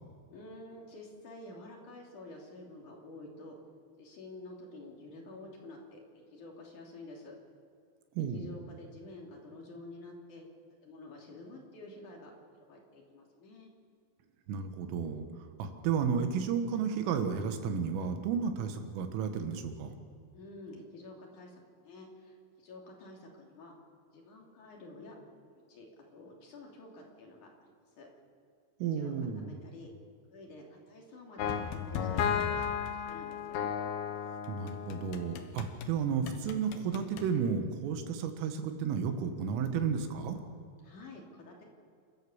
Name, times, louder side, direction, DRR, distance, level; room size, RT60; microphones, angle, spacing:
voice 1, 0.3-3.6 4.0-6.0 6.3-7.4 8.2-10.4 10.8-13.7 20.3-23.7 24.1-25.2 25.5-27.5 28.0-28.1 28.9-29.9 30.3-32.2 32.5-33.7 40.8-41.6, left 2 dB, 45° left, -1 dB, 3.8 m, -49 dB
voice 2, 8.2-8.5 14.5-15.2 15.6-19.9 28.8-29.6 34.5-40.4, right 6 dB, 80° right, 7 dB, 4.1 m, -32 dB
sound 1, 31.4-35.9 36.3-37.3, left 7 dB, 70° left, 2.5 m, -34 dB
29.5 x 13.5 x 7.3 m, 2.2 s
omnidirectional pair, 5.8 m